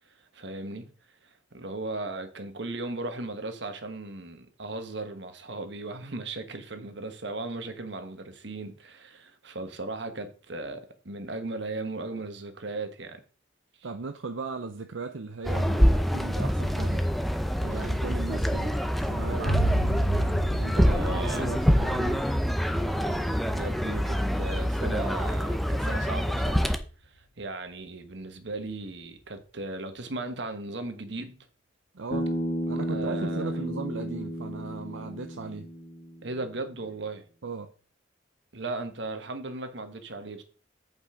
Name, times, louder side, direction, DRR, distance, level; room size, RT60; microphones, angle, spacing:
voice 1, 0.3-0.9 1.2-13.2 20.9-21.5 23.5-26.7 27.0-31.4 32.9-33.5 36.2-37.2 38.5-40.4, right 2 dB, 65° right, 1.4 m, -37 dB
voice 2, 13.8-17.1 17.6-19.8 20.6-22.3 31.9-32.3 32.7-35.7 37.4-37.7, right 4 dB, 80° right, 0.7 m, -37 dB
sound 1, 15.4-26.8, equal, ahead, 0.6 m, -26 dB
sound 2, 19.5-26.8, right 1 dB, 70° left, 1.6 m, -32 dB
Bass guitar, 32.1-36.4, equal, 45° left, 2.0 m, -33 dB
8.2 x 5.5 x 4.9 m
head